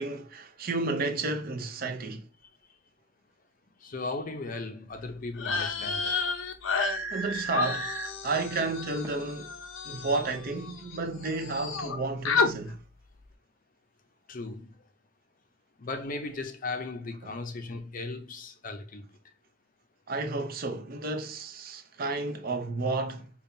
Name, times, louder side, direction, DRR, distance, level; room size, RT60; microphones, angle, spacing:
voice 1, 0.0-2.3 7.1-7.9 8.2-9.5 9.8-12.8 20.1-23.3, right 3 dB, 45° right, 0.6 m, -32 dB
voice 2, 3.8-6.2 14.3-14.7 15.8-19.1, left 3 dB, 40° left, 0.5 m, -37 dB
sound 1, 5.4-11.0 11.2-12.0 12.2-12.5, left 5 dB, 85° left, 0.6 m, -31 dB
sound 2, 6.4-6.5 6.8-8.1 9.0-9.1, right 3 dB, 15° right, 0.7 m, -35 dB
5.2 x 2.3 x 2.6 m
head